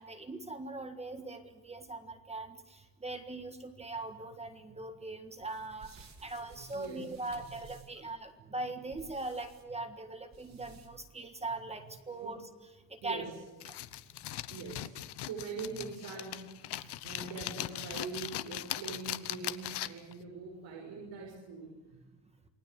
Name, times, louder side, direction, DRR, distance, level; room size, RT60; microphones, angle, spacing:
voice 1, 0.0-12.4 12.9-13.2, right 2 dB, 15° right, 7 dB, 1.6 m, -41 dB
sound 1, 5.4-8.1 8.9-9.6 10.3-11.1, right 6 dB, 40° right, 2.8 m, -56 dB
voice 2, 6.4-7.2 7.9-8.0 8.4-8.6 10.5-10.6 13.0-13.4 14.5-22.0, right 4 dB, 75° right, -1 dB, 6.6 m, -43 dB
sound 2, 13.6-20.1, left 14 dB, 65° left, 1.1 m, -40 dB
28.5 x 20.5 x 8.1 m, 1.1 s
cardioid pair, 175°, 43 cm